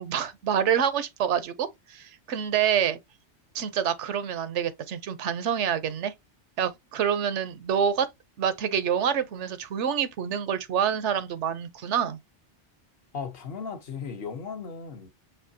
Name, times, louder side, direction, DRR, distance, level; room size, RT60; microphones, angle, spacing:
voice 1, 0.0-3.0 3.5-6.1 6.6-8.1 8.4-12.2, right 8 dB, 90° right, 1.0 m, -27 dB
voice 2, 13.1-15.1, left 5 dB, 60° left, 1.0 m, -36 dB
5.8 x 2.9 x 2.7 m
omnidirectional pair, 1.2 m